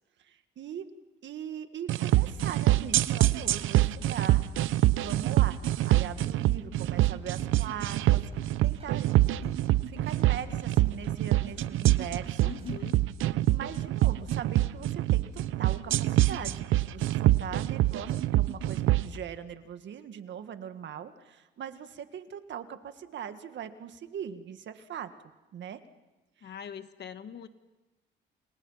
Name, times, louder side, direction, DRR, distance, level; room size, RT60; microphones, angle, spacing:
voice 1, 0.2-0.9 1.2-4.5 5.0-5.6 5.8-12.5 13.5-25.1 25.5-25.8 26.4-26.5, right 9 dB, 65° right, 9 dB, 1.8 m, -41 dB
sound 1, 1.9-19.1, right 15 dB, 85° right, 0.8 m, -25 dB
sound 2, 6.8-11.8 12.3-12.8, right 3 dB, 30° right, 7.3 m, -51 dB
voice 2, 12.4-13.0 26.4-27.5, left 7 dB, 60° left, 10 dB, 1.7 m, -41 dB
29.5 x 28.5 x 5.8 m, 1.1 s
cardioid pair, 90°, 20 cm